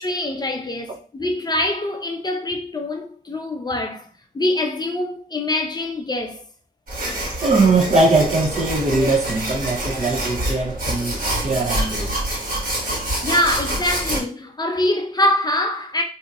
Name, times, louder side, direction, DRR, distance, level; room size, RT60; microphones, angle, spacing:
voice 1, 0.0-4.1 4.3-6.4 13.0-16.0, left 1 dB, 25° left, 0.4 m, -24 dB
sound 1, 6.9-14.2, right 1 dB, 60° right, 1.5 m, -26 dB
voice 2, 7.4-12.2, right 3 dB, 45° right, 0.6 m, -20 dB
2.7 x 2.3 x 4.0 m
wide cardioid pair, 130°, 16 cm